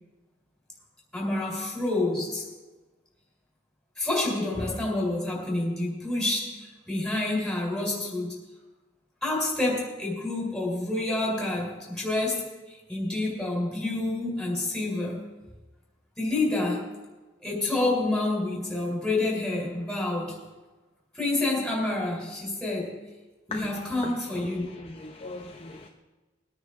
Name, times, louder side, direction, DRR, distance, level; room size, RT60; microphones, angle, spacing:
voice 1, 1.1-2.5 4.0-8.4 9.2-15.2 16.2-16.9 17.4-20.4 21.1-23.0 23.5-24.7, left 2 dB, 5° left, -3 dB, 3.6 m, -28 dB
voice 2, 24.0-25.9, left 2 dB, 30° left, 0 dB, 0.7 m, -40 dB
20.5 x 9.6 x 3.7 m, 1.2 s
head